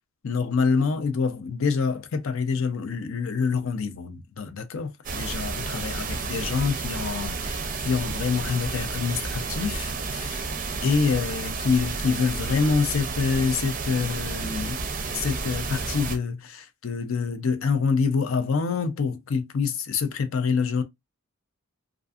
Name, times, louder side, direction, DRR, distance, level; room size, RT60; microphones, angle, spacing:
voice 1, 0.2-10.4 10.8-14.8 15.1-20.8, left 5 dB, 65° left, 0.5 m, -26 dB
sound 1, 5.0-16.2, right 4 dB, 35° right, 0.5 m, -31 dB
2.5 x 2.5 x 2.3 m
head